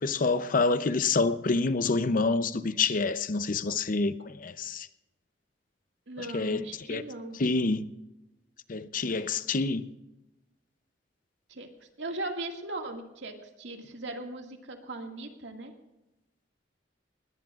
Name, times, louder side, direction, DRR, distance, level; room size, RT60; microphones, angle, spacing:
voice 1, 0.0-4.9 6.2-7.0 7.4-7.8 8.7-9.9, left 3 dB, 50° left, 0.7 m, -27 dB
voice 2, 6.1-7.4 11.5-15.7, right 2 dB, 85° right, 2.0 m, -39 dB
20.0 x 18.0 x 2.5 m
head